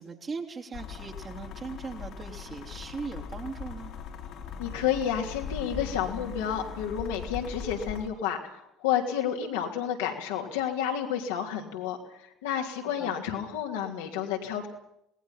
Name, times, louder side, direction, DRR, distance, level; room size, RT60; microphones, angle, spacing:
voice 1, 0.0-3.9 13.0-13.1, right 4 dB, 35° right, 2 dB, 3.4 m, -39 dB
sound 1, 0.7-8.1, left 7 dB, 55° left, 3.0 m, -40 dB
voice 2, 4.6-14.7, left 9 dB, 70° left, 1 dB, 3.1 m, -30 dB
28.0 x 19.0 x 5.7 m, 0.77 s
figure-of-eight pair, 55°, 0 cm